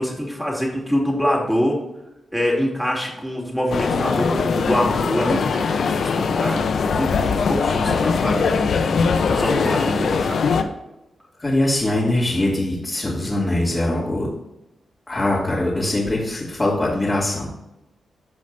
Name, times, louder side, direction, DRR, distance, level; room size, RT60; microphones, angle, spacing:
voice 1, 0.0-1.8 2.3-8.7 9.3-10.4, equal, ahead, -2 dB, 3.1 m, -24 dB
sound 1, 3.7-10.6, left 5 dB, 75° left, 0.8 m, -21 dB
voice 2, 11.4-14.3 15.1-17.5, left 1 dB, 25° left, -8 dB, 2.9 m, -22 dB
15.0 x 5.1 x 2.7 m, 0.93 s
cardioid pair, 65°, 0 cm